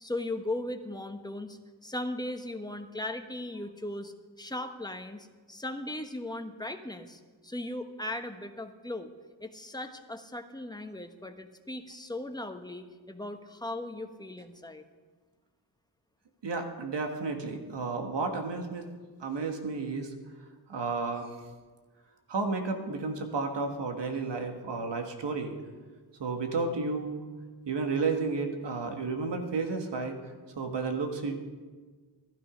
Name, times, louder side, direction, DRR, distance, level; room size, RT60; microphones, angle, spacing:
voice 1, 0.0-9.1 9.4-14.8, left 1 dB, 10° left, 7 dB, 1.2 m, -38 dB
voice 2, 16.4-18.9 19.2-20.1 20.7-21.4 22.3-25.6 26.2-27.2 27.7-31.3, right 4 dB, 85° right, 5 dB, 1.7 m, -32 dB
14.5 x 12.5 x 5.1 m, 1.4 s
cardioid pair, 65°, 42 cm